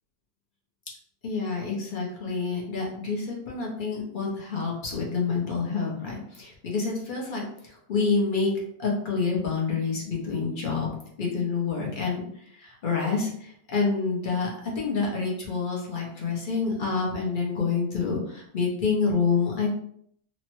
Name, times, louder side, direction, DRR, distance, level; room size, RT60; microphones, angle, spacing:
voice 1, 1.2-8.5 8.8-10.9 11.2-12.3 12.6-14.5 14.8-19.7, left 4 dB, 45° left, -2 dB, 0.7 m, -28 dB
3.0 x 2.1 x 3.0 m, 0.67 s
omnidirectional pair, 1.5 m